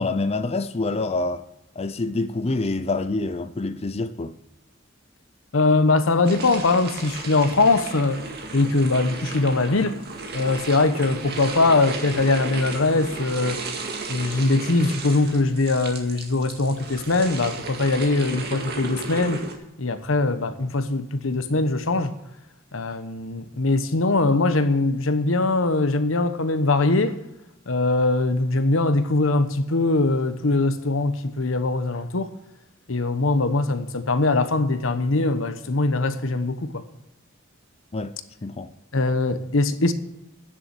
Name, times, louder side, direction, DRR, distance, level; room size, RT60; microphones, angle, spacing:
voice 1, 0.0-1.4 1.8-4.4 37.9-38.1 38.4-38.7, left 3 dB, 30° left, 0.5 m, -26 dB
voice 2, 5.5-8.2 8.5-10.0 10.3-13.6 14.1-19.4 19.8-22.1 22.7-27.2 27.7-32.3 32.9-36.8 38.9-39.9, left 2 dB, 80° left, 1.0 m, -22 dB
sound 1, 6.2-19.5, right 3 dB, 55° right, 2.0 m, -34 dB
10.0 x 7.0 x 8.9 m
head